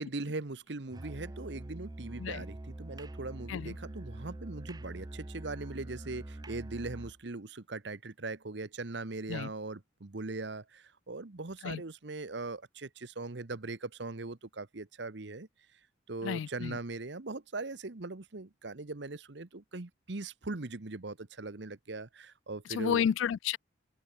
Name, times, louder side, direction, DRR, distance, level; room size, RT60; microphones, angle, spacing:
voice 1, 0.0-15.5 16.1-23.0, right 3 dB, 65° right, 1.1 m, -40 dB
Musical instrument, 0.9-7.2, right 1 dB, 20° right, 0.6 m, -44 dB
voice 2, 16.2-16.8 22.7-23.6, left 8 dB, 80° left, 0.3 m, -31 dB
open air
head